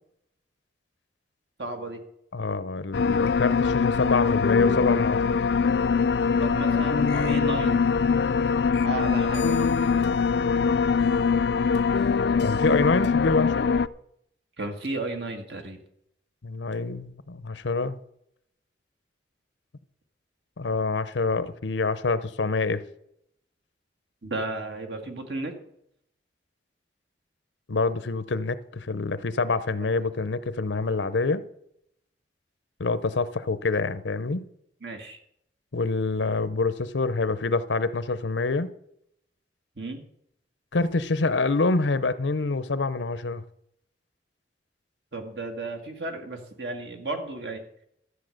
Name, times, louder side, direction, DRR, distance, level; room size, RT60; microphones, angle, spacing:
voice 1, 1.6-2.0 6.4-7.8 8.8-10.1 14.6-15.8 24.2-25.5 29.8-29.9 34.8-35.2 39.8-40.0 45.1-47.6, right 2 dB, 70° right, 1.9 m, -34 dB
voice 2, 2.3-5.2 12.4-13.7 16.4-18.0 20.6-22.8 27.7-31.4 32.8-34.5 35.7-38.7 40.7-43.4, left 3 dB, 85° left, 0.8 m, -26 dB
sound 1, 2.9-13.9, left 5 dB, 65° left, 0.4 m, -23 dB
13.0 x 8.2 x 6.5 m
head